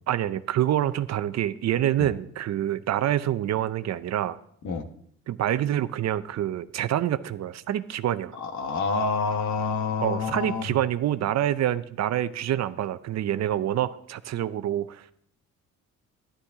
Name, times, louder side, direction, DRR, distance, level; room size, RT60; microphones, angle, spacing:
voice 1, 0.1-4.4 5.3-8.3 10.0-15.1, right 12 dB, 60° right, 14 dB, 0.6 m, -26 dB
voice 2, 8.4-10.6, left 4 dB, 65° left, 6 dB, 1.3 m, -27 dB
11.5 x 11.0 x 3.6 m, 0.66 s
cardioid pair, 90°, 30 cm